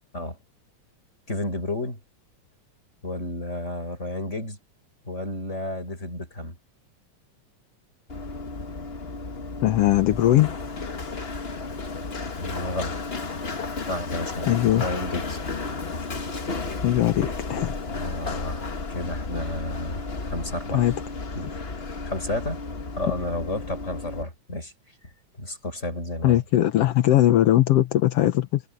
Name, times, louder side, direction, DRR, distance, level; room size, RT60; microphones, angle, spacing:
voice 1, 1.3-2.0 3.0-4.6 5.1-6.6 12.4-13.0 13.9-15.4 18.0-18.6 18.9-20.9 21.4-21.6 22.0-22.6 23.0-24.7 25.4-26.4, left 1 dB, 20° left, 7.2 m, -31 dB
Run, 8.1-24.2, left 3 dB, 50° left, 0.7 m, -33 dB
voice 2, 9.6-10.5 14.5-14.8 16.8-17.7 18.3-18.5 20.7-20.9 26.2-28.6, left 13 dB, 65° left, 1.7 m, -20 dB
omnidirectional pair, 3.5 m